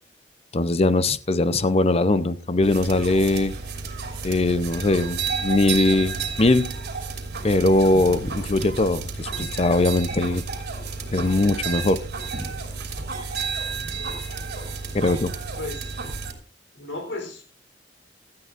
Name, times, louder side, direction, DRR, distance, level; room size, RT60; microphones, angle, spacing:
voice 1, 0.5-3.5 4.2-6.7 7.4-10.4 11.1-12.0 14.9-15.3, left 2 dB, 35° left, 0.6 m, -21 dB
sound 1, 2.6-16.3, right 4 dB, 60° right, 2.8 m, -31 dB
voice 2, 15.6-15.9 16.8-17.4, left 2 dB, 85° left, 3.6 m, -34 dB
17.0 x 12.5 x 2.5 m
head